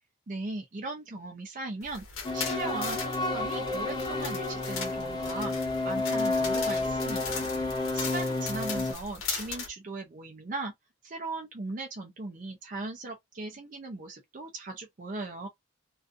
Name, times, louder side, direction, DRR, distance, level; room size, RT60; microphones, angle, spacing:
voice 1, 0.3-2.0 2.3-5.5 5.8-7.5 7.9-10.7 11.0-15.5, right 2 dB, 40° right, 0.5 m, -38 dB
sound 1, 1.8-9.7, left 5 dB, 80° left, 0.9 m, -39 dB
sound 2, 2.2-8.9, left 2 dB, 20° left, 0.5 m, -30 dB
2.4 x 2.4 x 2.5 m
head